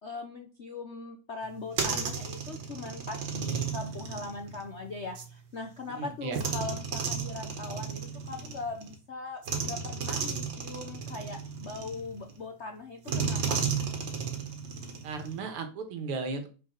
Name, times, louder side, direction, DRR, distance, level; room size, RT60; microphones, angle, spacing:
voice 1, 0.0-13.6, left 3 dB, 65° left, 3 dB, 0.6 m, -40 dB
sound 1, 1.4-5.3 6.3-9.0 9.4-12.4 13.1-15.5, right 6 dB, 60° right, 1.9 m, -34 dB
voice 2, 5.9-6.4 15.0-16.5, right 4 dB, 90° right, 6 dB, 2.1 m, -35 dB
5.7 x 4.6 x 5.6 m, 0.36 s
omnidirectional pair, 2.4 m